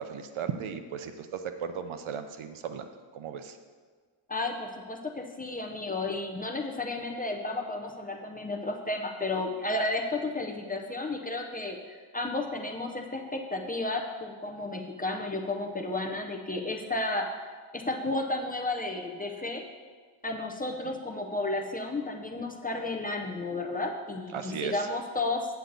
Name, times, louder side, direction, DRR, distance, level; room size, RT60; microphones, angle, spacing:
voice 1, 0.0-3.6 20.8-21.0 24.3-24.9, right 7 dB, 75° right, 8 dB, 0.7 m, -36 dB
voice 2, 4.3-17.5 17.7-19.6 20.2-25.5, left 2 dB, 20° left, 2 dB, 0.5 m, -32 dB
8.0 x 8.0 x 3.9 m, 1.5 s
wide cardioid pair, 165°, 49 cm